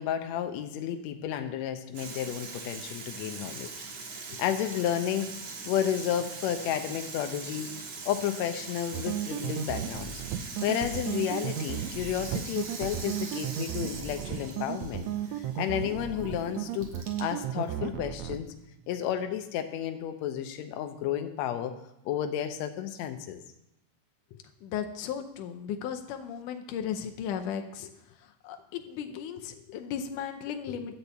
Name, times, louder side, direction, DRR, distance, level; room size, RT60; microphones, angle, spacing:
voice 1, 0.0-3.7 4.1-5.3 5.7-15.1 15.4-16.9 17.2-18.5 18.9-21.7 22.1-23.4 30.7-30.8, left 10 dB, 70° left, 6 dB, 1.8 m, -32 dB
Water tap faucet / Sink (filling or washing), 1.9-19.4, right 4 dB, 60° right, 2.4 m, -42 dB
sound 1, 8.9-18.4, right 10 dB, 80° right, 1.7 m, -34 dB
voice 2, 24.6-27.9 28.4-30.9, left 8 dB, 90° left, 6 dB, 2.3 m, -35 dB
11.5 x 4.2 x 8.0 m, 0.79 s
omnidirectional pair, 3.6 m